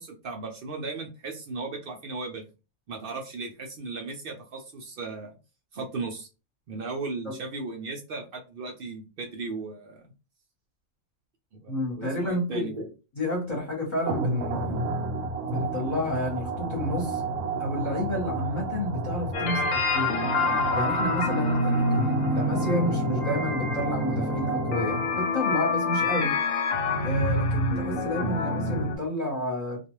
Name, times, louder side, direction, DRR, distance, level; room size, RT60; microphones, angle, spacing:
voice 1, 0.0-2.4 2.9-5.3 5.7-6.3 6.7-10.0 11.5-12.8, right 3 dB, 65° right, 2 dB, 0.5 m, -36 dB
voice 2, 11.7-12.9 13.1-14.8 15.5-17.2 17.6-20.2 20.7-26.3 27.0-29.8, left 1 dB, 35° left, -2 dB, 0.9 m, -30 dB
sound 1, 14.1-25.4, right 3 dB, 85° right, 1.0 m, -32 dB
sound 2, 19.3-29.0, left 2 dB, 70° left, 1.0 m, -27 dB
2.3 x 2.3 x 2.9 m, 0.31 s
omnidirectional pair, 1.5 m